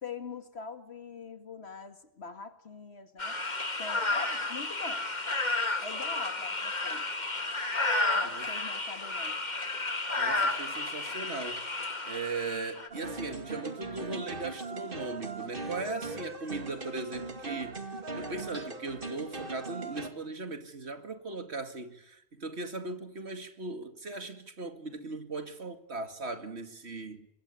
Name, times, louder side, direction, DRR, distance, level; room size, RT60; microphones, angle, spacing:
voice 1, 0.0-3.4 3.8-5.1 5.8-7.1 8.1-9.4, left 4 dB, 75° left, 2.3 m, -43 dB
sound 1, 3.2-12.9, left 2 dB, 40° left, 2.2 m, -32 dB
voice 2, 10.2-11.6 12.0-27.3, right 3 dB, 80° right, 2.6 m, -38 dB
sound 2, 12.9-20.1, right 3 dB, 55° right, 2.8 m, -39 dB
26.5 x 21.0 x 8.5 m
omnidirectional pair, 1.1 m